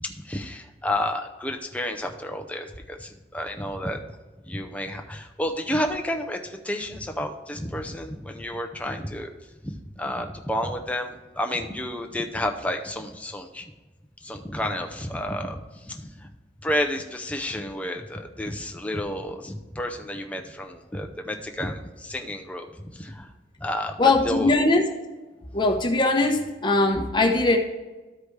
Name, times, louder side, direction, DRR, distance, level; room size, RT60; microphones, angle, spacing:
voice 1, 0.0-4.0 4.4-9.3 10.0-13.7 14.2-16.3 16.6-22.7 22.9-23.3 23.6-24.5, left 1 dB, 5° left, 4 dB, 0.6 m, -31 dB
voice 2, 24.0-24.8 25.5-27.6, left 2 dB, 25° left, 2 dB, 1.0 m, -20 dB
13.5 x 4.9 x 3.3 m, 1.2 s
head